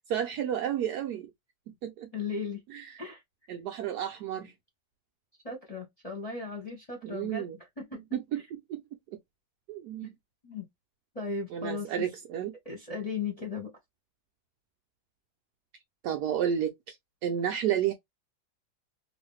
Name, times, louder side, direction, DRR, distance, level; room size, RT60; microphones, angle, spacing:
voice 1, 0.1-1.3 1.7-2.1 2.7-3.0 3.5-4.5 7.0-7.6 8.1-8.8 9.7-10.1 11.5-12.5 16.0-17.0 17.2-17.9, right 9 dB, 80° right, 0.8 m, -31 dB
voice 2, 2.1-2.6 3.0-3.2 5.4-7.5 7.8-8.0 10.0-10.2 10.4-10.6 11.1-11.9 12.6-13.7, left 4 dB, 25° left, 0.9 m, -36 dB
3.1 x 2.5 x 3.1 m
omnidirectional pair, 2.2 m